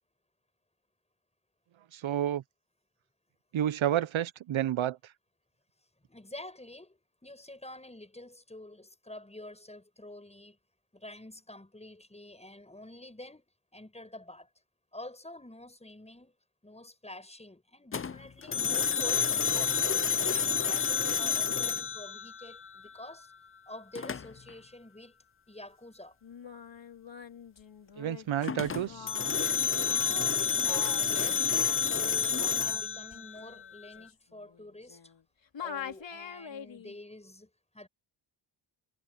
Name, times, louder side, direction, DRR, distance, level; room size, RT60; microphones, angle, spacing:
voice 1, 1.9-2.4 3.5-5.0 28.0-29.1, right 11 dB, 75° right, 0.7 m, -30 dB
voice 2, 6.1-10.6 10.9-13.4 13.7-14.5 14.9-16.3 16.6-19.9 20.3-23.3 23.7-25.1 25.5-26.2 29.7-35.0 35.6-37.9, left 1 dB, 15° left, 7.5 m, -48 dB
sound 1, 17.9-22.9 23.9-24.5 28.4-33.9, left 6 dB, 30° left, 0.5 m, -29 dB
Singing, 26.2-35.2 35.5-37.0, left 7 dB, 65° left, 4.6 m, -45 dB
wide cardioid pair, 160°, 47 cm